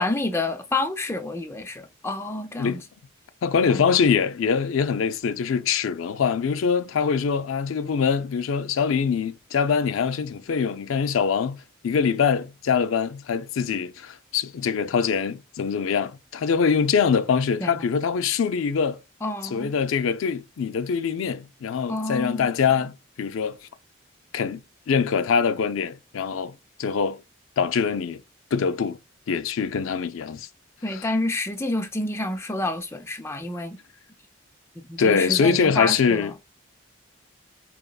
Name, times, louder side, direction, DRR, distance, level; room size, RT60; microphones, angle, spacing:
voice 1, 0.0-2.8 3.7-3.8 17.6-17.7 19.2-19.7 21.9-22.5 30.8-33.8 34.9-36.3, left 2 dB, 10° left, 0.4 m, -28 dB
voice 2, 3.4-19.0 19.4-23.6 24.3-27.2 27.6-28.2 28.5-29.0 29.3-30.5 30.9-31.1 35.0-36.3, left 6 dB, 75° left, 0.4 m, -24 dB
5.0 x 2.9 x 2.3 m
head